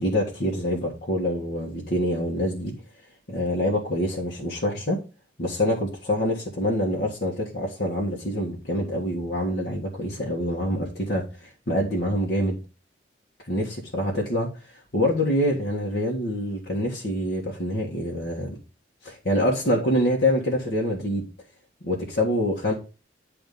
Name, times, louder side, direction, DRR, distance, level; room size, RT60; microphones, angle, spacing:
voice 1, 0.0-2.7 3.3-5.0 5.4-12.6 13.5-18.6 19.0-21.3 21.8-22.7, equal, 60° left, -3 dB, 1.6 m, -26 dB
10.0 x 3.6 x 5.4 m, 0.33 s
head